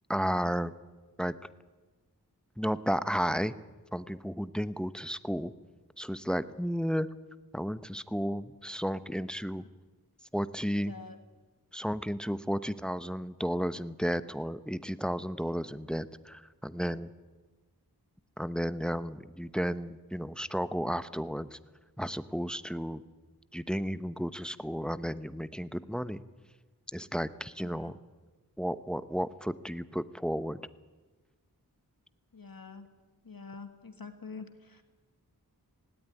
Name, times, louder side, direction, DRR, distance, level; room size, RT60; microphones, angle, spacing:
voice 1, 0.1-0.7 1.2-1.3 2.6-3.5 3.9-5.5 6.0-7.1 7.5-9.6 10.3-10.9 11.7-17.1 18.4-21.6 22.0-23.0 23.5-26.2 26.9-28.0 28.6-30.6, equal, ahead, 14 dB, 0.8 m, -33 dB
voice 2, 32.3-32.9 33.2-34.8, left 4 dB, 60° left, 8 dB, 1.6 m, -46 dB
18.5 x 18.0 x 9.8 m, 1.3 s
wide cardioid pair, 45°, 38 cm